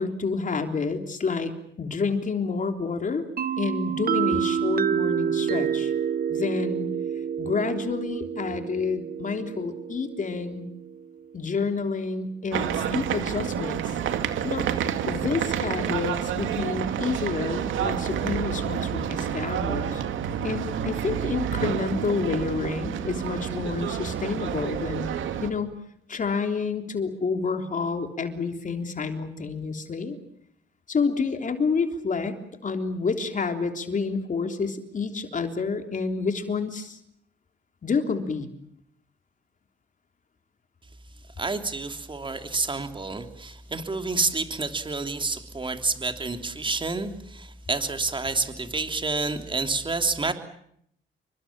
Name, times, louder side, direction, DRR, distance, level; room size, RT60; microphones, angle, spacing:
voice 1, 0.0-1.5 1.8-3.2 3.6-5.9 6.3-6.9 7.4-10.7 11.3-14.0 14.4-14.7 15.1-20.0 20.4-25.1 25.4-25.8 26.1-30.2 30.9-32.4 32.6-37.0 37.8-38.5, left 4 dB, 40° left, 6 dB, 3.4 m, -29 dB
sound 1, 3.4-11.0, right 8 dB, 50° right, 1.0 m, -28 dB
sound 2, 12.5-25.5, right 9 dB, 80° right, 2.4 m, -29 dB
voice 2, 41.4-50.3, right 3 dB, 25° right, 7 dB, 3.2 m, -29 dB
28.5 x 24.0 x 7.5 m, 0.71 s
cardioid pair, 90°, 20 cm